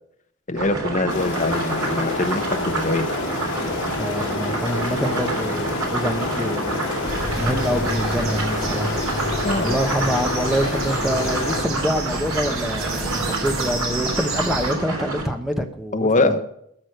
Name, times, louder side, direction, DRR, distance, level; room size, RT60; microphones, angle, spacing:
voice 1, 0.5-3.1 9.4-9.8 15.9-16.4, left 2 dB, 35° left, 0.9 m, -23 dB
sound 1, 0.5-15.2, right 2 dB, 90° right, 3.4 m, -28 dB
sound 2, 1.1-11.6, left 3 dB, 50° left, 4.6 m, -28 dB
voice 2, 3.9-6.8 7.4-9.0 9.6-16.4, equal, ahead, 1.0 m, -26 dB
sound 3, 7.1-14.7, right 2 dB, 65° right, 3.1 m, -30 dB
13.0 x 6.3 x 7.8 m
head